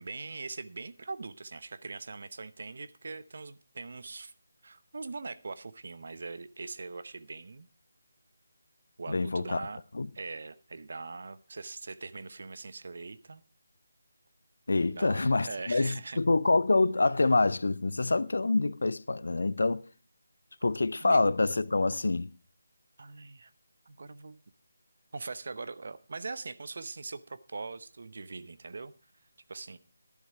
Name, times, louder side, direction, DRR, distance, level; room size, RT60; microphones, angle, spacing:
voice 1, 0.0-4.3 4.6-7.7 9.0-9.8 10.1-13.4 14.9-16.2 21.0-21.2 23.0-23.5 23.9-24.4 25.1-28.9 29.5-29.8, right 3 dB, 55° right, 0.8 m, -41 dB
voice 2, 9.1-9.7 9.9-10.1 14.7-19.9 20.6-22.3, left 3 dB, 65° left, 0.6 m, -26 dB
12.0 x 10.5 x 4.6 m
figure-of-eight pair, 155°, 0 cm